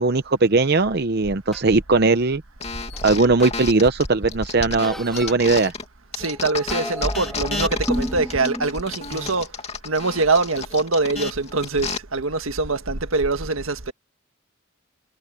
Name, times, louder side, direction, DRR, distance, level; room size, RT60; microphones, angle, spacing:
voice 1, 0.0-2.4 3.0-5.7, right 3 dB, 50° right, 0.7 m, -19 dB
sound 1, 0.8-0.9 1.5-1.6 2.9-3.0 3.4-5.4 6.2-8.8, equal, ahead, 2.0 m, -30 dB
sound 2, 2.6-5.8 6.1-12.0, left 4 dB, 30° left, 2.5 m, -31 dB
voice 2, 6.1-9.5 9.8-13.9, right 3 dB, 85° right, 1.7 m, -23 dB
head